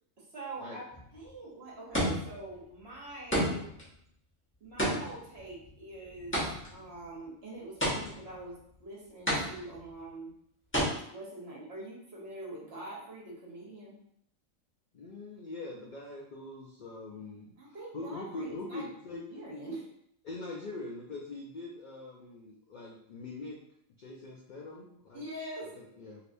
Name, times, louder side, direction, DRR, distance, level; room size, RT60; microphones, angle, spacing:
voice 1, 0.2-0.9 1.1-3.7 4.6-6.4 6.7-10.3 11.1-13.9 17.6-18.9 19.3-19.9 25.1-25.8, right 2 dB, 55° right, -4 dB, 1.1 m, -44 dB
sound 1, 0.9-1.3 1.9-2.5 3.3-3.8 4.8-6.8 7.8-8.4 9.3-9.9 10.7-10.9, equal, 10° left, 0.7 m, -31 dB
voice 2, 14.9-19.2 20.2-23.6 24.0-25.2 25.8-26.2, left 2 dB, 70° left, -2 dB, 0.4 m, -43 dB
3.3 x 2.7 x 2.5 m, 0.71 s
omnidirectional pair, 1.4 m